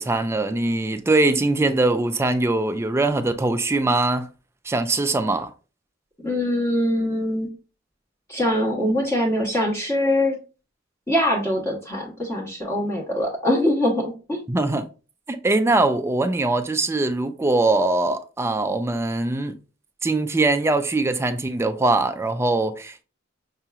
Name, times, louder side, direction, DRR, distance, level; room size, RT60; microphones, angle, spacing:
voice 1, 0.0-4.3 4.6-5.5 14.5-14.9 15.3-19.6 20.0-23.0, right 2 dB, 15° right, 0.4 m, -22 dB
voice 2, 6.2-7.5 8.3-10.4 11.1-14.4, left 1 dB, 15° left, 1.2 m, -23 dB
5.6 x 2.8 x 2.4 m
head